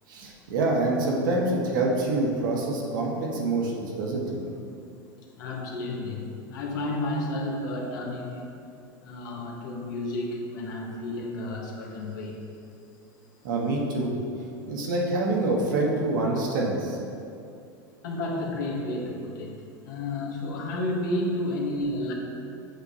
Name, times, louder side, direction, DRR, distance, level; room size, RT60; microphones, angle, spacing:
voice 1, 0.1-4.4 13.4-14.2 14.7-17.0, right 2 dB, 80° right, -2 dB, 1.4 m, -26 dB
voice 2, 5.4-8.5 9.0-12.4 18.0-19.5 19.8-22.1, left 1 dB, 75° left, 0 dB, 1.3 m, -31 dB
8.1 x 6.6 x 2.7 m, 2.6 s
supercardioid pair, 115°, 10 cm